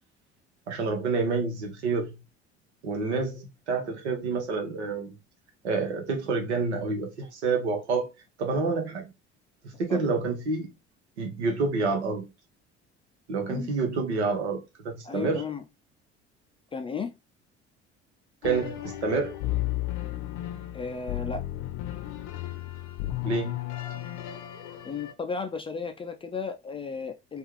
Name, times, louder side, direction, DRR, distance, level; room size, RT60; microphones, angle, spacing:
voice 1, 0.7-2.1 2.8-5.1 5.6-8.1 8.4-9.1 9.8-10.7 11.2-12.2 13.3-15.4 18.4-19.3 23.2-23.6, right 4 dB, 75° right, 1.1 m, -28 dB
voice 2, 15.0-15.6 16.7-17.2 20.7-21.4 24.8-27.4, left 5 dB, 15° left, 0.4 m, -34 dB
sound 1, 18.4-25.1, left 15 dB, 55° left, 0.6 m, -34 dB
3.4 x 2.4 x 3.1 m
figure-of-eight pair, 60°, 34 cm